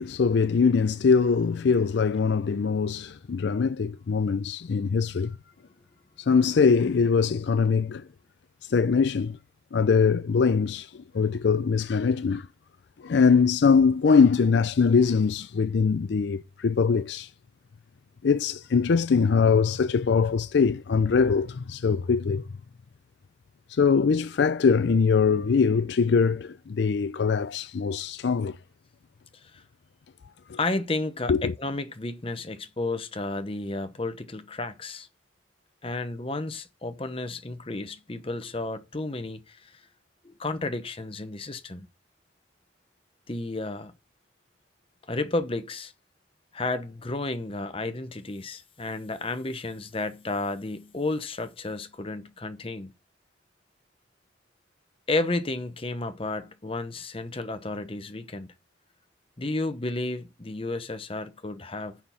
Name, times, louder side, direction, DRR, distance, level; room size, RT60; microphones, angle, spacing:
voice 1, 0.0-5.4 6.3-8.0 8.7-9.4 9.7-10.9 11.1-12.5 13.0-17.3 18.2-22.5 23.7-28.6 30.5-30.6 31.3-31.5, left 5 dB, 60° left, 0.4 m, -22 dB
voice 2, 30.6-35.1 35.8-39.7 40.2-41.9 43.3-43.9 45.1-45.9 46.5-52.9 55.1-58.5 59.4-62.0, left 2 dB, 30° left, 0.8 m, -32 dB
6.8 x 5.8 x 6.9 m
head